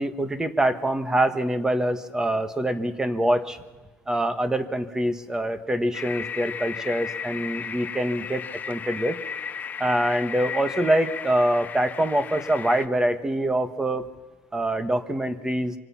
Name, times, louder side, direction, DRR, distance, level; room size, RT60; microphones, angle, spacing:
voice 1, 0.0-3.6 4.1-9.2 9.8-14.0 14.5-15.7, right 1 dB, 10° right, 11 dB, 1.5 m, -25 dB
sound 1, 5.9-12.9, left 6 dB, 30° left, 0.8 m, -35 dB
26.0 x 24.5 x 5.9 m, 1.2 s
cardioid pair, 135°, 6 cm